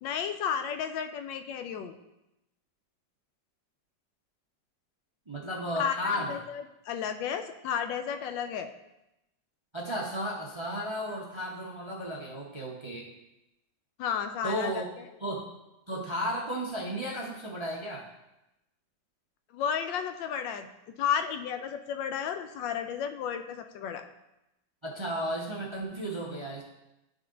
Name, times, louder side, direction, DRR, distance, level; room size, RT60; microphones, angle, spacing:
voice 1, 0.0-1.9 5.8-6.0 6.3-6.4 6.9-8.7 14.0-14.8 19.5-20.7 21.0-24.0, left 8 dB, 90° left, 8 dB, 1.3 m, -32 dB
voice 2, 5.3-6.4 9.7-13.1 14.4-14.9 15.2-15.5 15.9-18.1 24.8-26.6, equal, 30° right, -3 dB, 0.5 m, -34 dB
11.5 x 3.8 x 3.8 m, 0.92 s
omnidirectional pair, 1.9 m